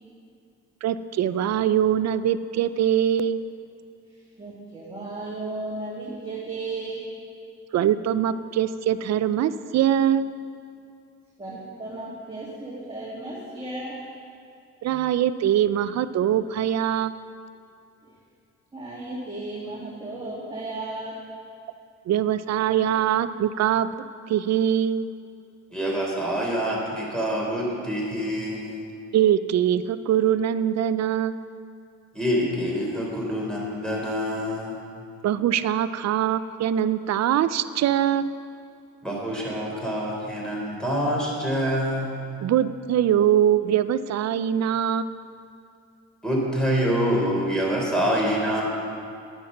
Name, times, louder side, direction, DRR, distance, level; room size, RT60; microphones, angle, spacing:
voice 1, 0.8-3.4 7.7-10.3 14.8-17.1 22.1-23.9 24.3-25.1 29.1-31.4 35.2-38.3 42.4-45.1, right 10 dB, 60° right, 13 dB, 0.5 m, -23 dB
voice 2, 4.1-7.1 11.4-14.0 18.0-18.1 18.7-21.2 22.7-23.0, right 2 dB, 20° right, -6 dB, 2.2 m, -35 dB
voice 3, 25.7-28.8 32.1-34.8 39.0-42.1 46.2-48.6, equal, ahead, -3 dB, 3.5 m, -26 dB
9.6 x 9.5 x 6.5 m, 2.4 s
cardioid pair, 90°, 30 cm